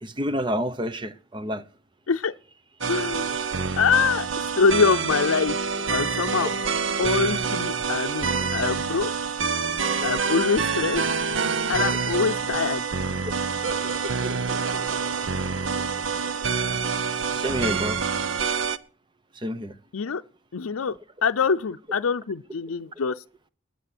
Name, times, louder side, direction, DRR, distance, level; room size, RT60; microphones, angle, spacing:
voice 1, 0.0-1.7 6.4-6.5 7.0-7.1 17.3-18.0 19.3-19.8, equal, 20° right, 0.8 m, -29 dB
sound 1, 2.8-18.8, right 5 dB, 65° right, 0.8 m, -27 dB
voice 2, 2.9-3.3 3.8-4.3 4.6-5.6 5.9-6.5 7.0-9.1 10.0-11.0 11.7-12.8 19.9-20.2 20.5-20.9 21.2-23.2, left 5 dB, 85° left, 0.6 m, -24 dB
20.0 x 8.3 x 6.1 m
head